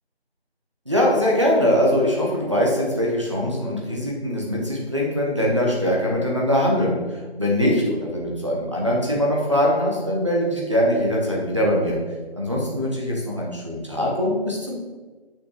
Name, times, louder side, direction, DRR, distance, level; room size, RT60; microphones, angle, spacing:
voice 1, 0.9-7.0 7.4-12.0 12.4-14.8, equal, 30° right, -3 dB, 1.2 m, -22 dB
6.8 x 5.9 x 3.9 m, 1.3 s
figure-of-eight pair, 180°, 33 cm